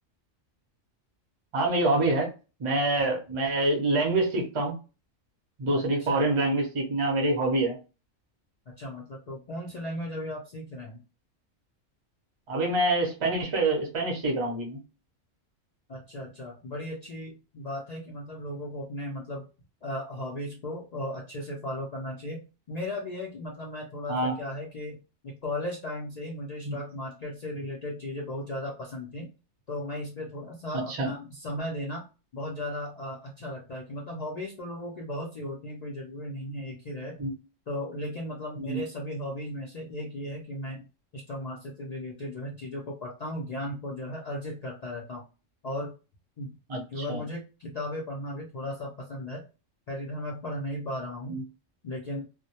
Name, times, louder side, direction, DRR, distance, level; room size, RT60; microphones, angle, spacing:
voice 1, 1.5-2.3 2.6-4.7 5.6-7.8 12.5-14.8 24.1-24.3 26.6-26.8 30.7-31.1 37.2-37.3 38.6-38.8 46.7-47.2 51.3-51.4, right 2 dB, 35° right, 0 dB, 0.5 m, -26 dB
voice 2, 5.7-6.3 8.8-11.0 15.9-19.5 19.8-25.0 25.2-29.3 29.7-32.1 32.3-37.2 37.7-40.8 41.1-45.2 45.6-45.9 46.4-46.6 46.9-49.4 49.9-51.4 51.8-52.3, left 1 dB, 85° left, -3 dB, 0.3 m, -36 dB
2.1 x 2.0 x 2.8 m, 0.32 s
omnidirectional pair, 1.3 m